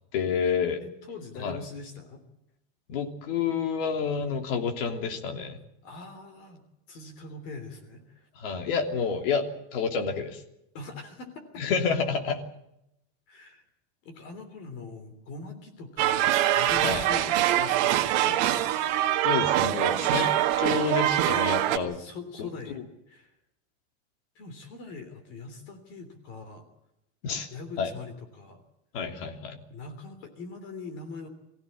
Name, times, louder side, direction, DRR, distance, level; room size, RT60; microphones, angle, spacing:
voice 1, 0.1-0.8 1.4-1.6 2.9-5.6 8.3-10.4 11.6-12.4 16.8-17.2 18.2-18.4 19.2-22.0 22.4-22.8 27.2-27.5 27.8-27.9 28.9-29.6, left 6 dB, 55° left, 5 dB, 3.2 m, -29 dB
voice 2, 0.8-2.2 5.8-6.6 6.9-8.3 10.7-11.6 13.3-13.6 14.0-18.3 21.7-22.8 23.1-23.3 24.3-26.6 27.5-28.6 29.7-31.3, left 3 dB, 35° left, 8 dB, 3.3 m, -42 dB
sound 1, 16.0-21.8, right 13 dB, 40° right, 1.8 m, -24 dB
24.0 x 16.0 x 8.6 m, 0.83 s
supercardioid pair, 180°, 34 cm